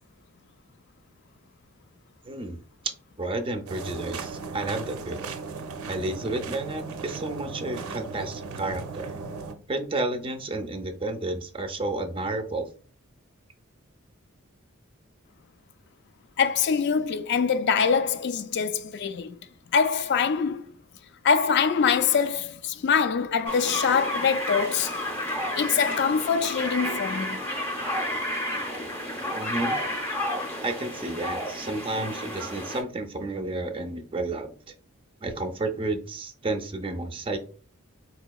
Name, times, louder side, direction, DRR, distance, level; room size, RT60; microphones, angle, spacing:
voice 1, 2.3-2.6 3.2-5.2 5.9-9.1 9.7-12.7 29.3-29.8 30.6-34.5 35.2-37.4, right 2 dB, 25° right, 0.4 m, -31 dB
sound 1, 3.7-9.5, right 4 dB, 80° right, 0.5 m, -36 dB
voice 2, 16.4-19.4 19.7-20.7 21.2-25.0 25.6-27.4, left 6 dB, 50° left, 0.3 m, -24 dB
sound 2, 23.4-32.8, left 1 dB, 10° left, 0.7 m, -31 dB
4.1 x 2.8 x 2.2 m
head